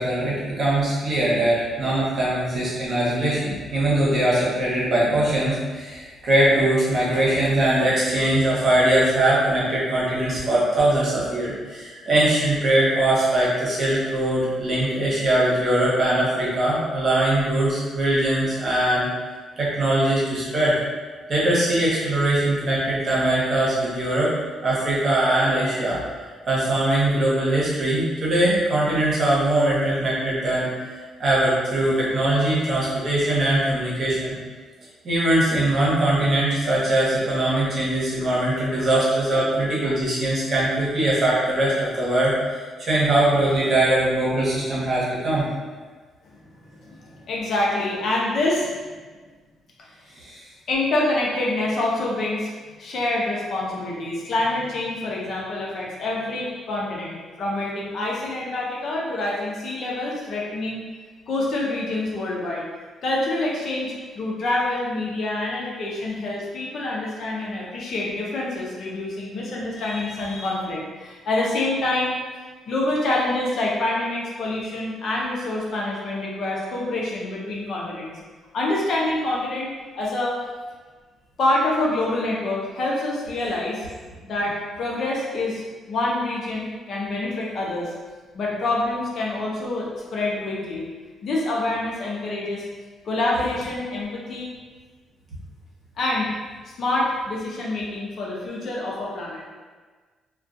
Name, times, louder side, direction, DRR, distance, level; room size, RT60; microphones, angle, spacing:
voice 1, 0.0-19.1 19.6-20.8 21.3-24.3 24.6-26.0 26.5-30.7 31.2-34.3 35.0-42.3 42.9-45.4 50.2-50.4, right 1 dB, 50° right, -7 dB, 0.9 m, -21 dB
voice 2, 46.5-48.9 50.7-60.8 61.3-62.7 63.0-72.2 72.7-78.1 78.5-80.4 81.4-83.9 84.2-87.9 88.3-90.9 91.2-92.7 93.0-94.5 96.0-96.3 96.8-99.4, left 2 dB, 60° left, -4 dB, 0.6 m, -26 dB
2.3 x 2.3 x 2.5 m, 1.4 s
cardioid pair, 90°, 0 cm